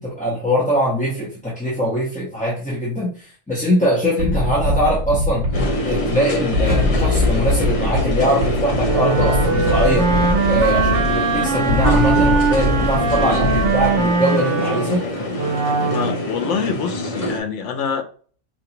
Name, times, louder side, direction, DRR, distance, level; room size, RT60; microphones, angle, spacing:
voice 1, 0.0-5.5 5.8-10.1 10.5-15.0, equal, 5° left, 0.8 m, -22 dB
sound 1, 4.2-14.1, left 1 dB, 40° right, 1.0 m, -22 dB
sound 2, 5.5-17.4, left 1 dB, 35° left, 0.7 m, -25 dB
Wind instrument woodwind instrument, 8.8-16.2, right 4 dB, 80° right, 1.0 m, -21 dB
voice 2, 15.8-18.0, left 6 dB, 80° left, 1.0 m, -25 dB
4.5 x 2.6 x 2.9 m
omnidirectional pair, 1.2 m